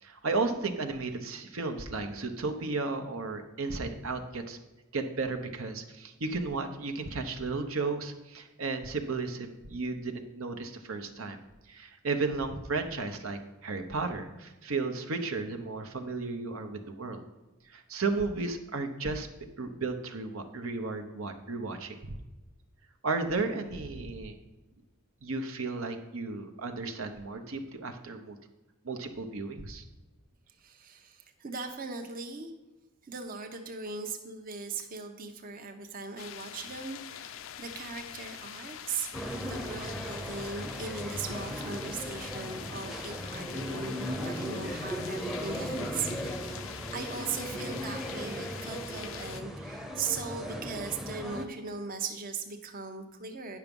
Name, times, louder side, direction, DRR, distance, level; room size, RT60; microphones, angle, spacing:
voice 1, 0.0-4.6 4.9-11.4 11.7-17.2 17.7-19.3 19.6-22.0 23.0-24.3 25.2-28.4 28.8-29.8, right 3 dB, 75° right, 6 dB, 0.9 m, -34 dB
voice 2, 30.6-32.5 33.0-39.1 39.4-53.6, right 5 dB, 40° right, 4 dB, 0.8 m, -39 dB
sound 1, 36.2-49.4, left 10 dB, 65° left, 0.4 m, -44 dB
sound 2, 39.1-51.5, equal, ahead, 0.7 m, -37 dB
9.5 x 6.0 x 5.3 m, 1.1 s
head